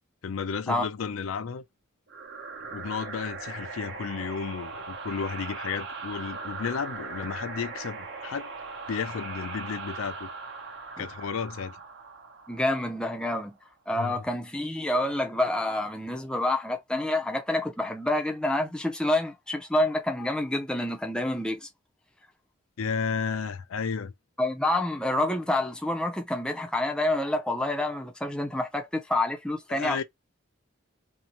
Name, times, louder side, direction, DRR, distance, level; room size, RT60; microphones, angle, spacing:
voice 1, 0.2-1.6 2.7-8.5 8.9-10.3 11.0-11.8 14.0-14.2 22.8-24.1 29.7-30.0, left 6 dB, 80° left, 0.4 m, -33 dB
sound 1, 2.1-13.4, right 4 dB, 55° right, 0.8 m, -39 dB
voice 2, 12.5-13.6 13.9-21.7 24.4-30.0, left 1 dB, 5° left, 0.5 m, -28 dB
2.7 x 2.1 x 2.9 m
head